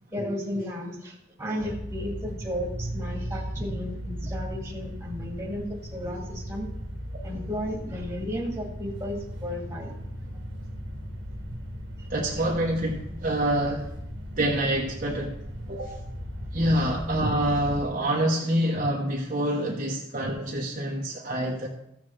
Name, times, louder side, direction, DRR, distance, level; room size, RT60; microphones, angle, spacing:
voice 1, 0.1-6.7 7.2-9.9 12.0-12.1 16.6-16.7, equal, 15° right, -1 dB, 1.8 m, -34 dB
sound 1, 1.6-17.8, equal, 65° right, 1.4 m, -37 dB
voice 2, 12.1-13.9 14.4-15.4 15.7-16.0 16.5-21.7, right 1 dB, 40° right, -2 dB, 1.0 m, -26 dB
14.5 x 7.6 x 3.3 m, 0.79 s
head